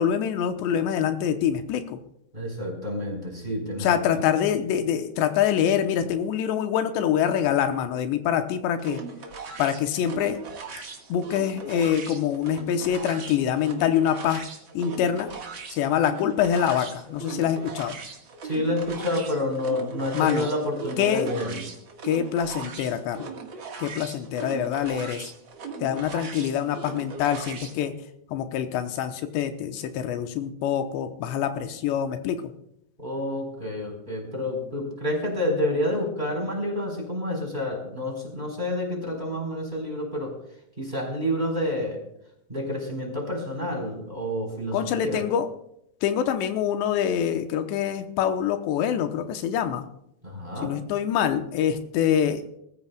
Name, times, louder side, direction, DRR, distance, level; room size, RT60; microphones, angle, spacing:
voice 1, 0.0-2.0 3.8-9.0 9.6-10.4 11.1-14.4 14.7-15.3 15.7-17.9 20.1-20.5 21.0-21.3 22.0-23.3 23.8-25.3 25.8-27.9 28.3-32.4 44.7-45.5 46.0-49.9 50.6-52.4, left 9 dB, 90° left, 7 dB, 3.0 m, -25 dB
voice 2, 2.3-4.3 18.4-21.6 33.0-40.3 40.8-42.0 42.5-45.2 50.2-50.8, left 1 dB, 10° right, 0 dB, 3.9 m, -29 dB
sound 1, 8.8-27.8, right 5 dB, 70° right, 1.1 m, -39 dB
24.5 x 14.0 x 2.3 m, 0.76 s
omnidirectional pair, 5.0 m